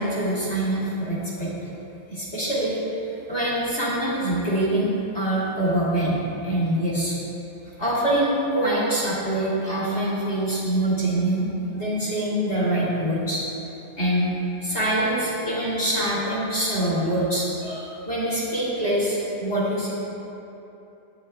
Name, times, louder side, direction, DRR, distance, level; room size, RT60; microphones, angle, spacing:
voice 1, 0.0-1.5 2.1-2.8 3.1-7.2 7.8-11.5 11.7-13.4 14.0-19.9, right 1 dB, 20° left, -7 dB, 2.1 m, -24 dB
19.5 x 14.0 x 2.3 m, 3.0 s
omnidirectional pair, 5.2 m